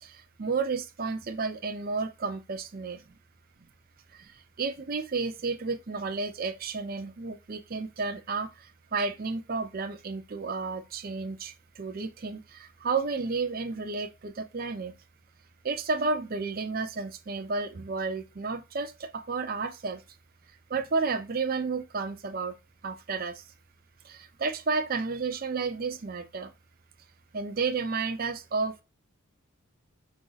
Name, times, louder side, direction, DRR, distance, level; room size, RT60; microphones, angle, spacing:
voice 1, 0.0-3.0 4.1-14.9 15.6-20.0 20.7-22.6 22.8-23.4 24.0-26.5 27.3-28.8, right 4 dB, 45° right, 0.5 m, -32 dB
4.9 x 2.5 x 3.9 m
head